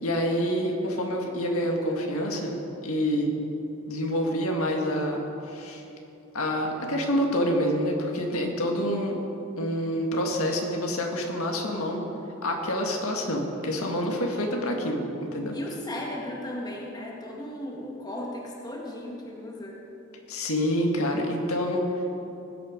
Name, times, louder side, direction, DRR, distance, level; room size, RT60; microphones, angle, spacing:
voice 1, 0.0-3.3 3.9-5.8 6.3-9.2 9.6-12.0 12.4-15.6 20.3-21.8, equal, 80° left, 1 dB, 1.9 m, -27 dB
voice 2, 14.2-14.9 15.5-19.8, left 1 dB, 20° left, -2 dB, 1.7 m, -37 dB
20.0 x 8.5 x 5.1 m, 2.9 s
head